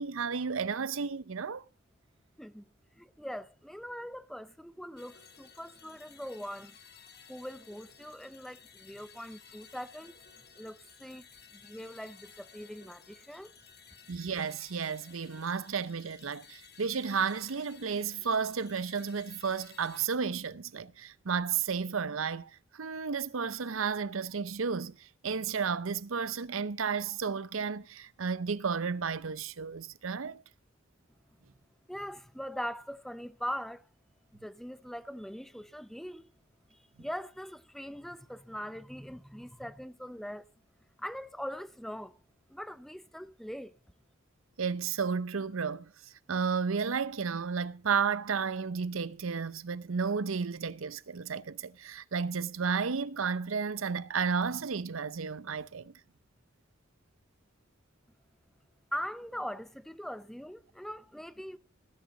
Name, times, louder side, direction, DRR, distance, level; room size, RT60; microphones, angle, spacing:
voice 1, 0.0-1.7 14.1-30.4 44.6-45.9 46.3-55.9, right 6 dB, 85° right, 0.7 m, -32 dB
voice 2, 3.0-6.8 7.3-10.1 10.6-11.3 11.5-13.5 31.9-33.8 34.4-36.3 36.7-40.5 41.0-42.2 42.5-43.7 58.9-61.6, equal, ahead, 0.6 m, -41 dB
sound 1, 5.0-20.1, left 7 dB, 50° left, 1.9 m, -56 dB
18.5 x 10.5 x 3.9 m
head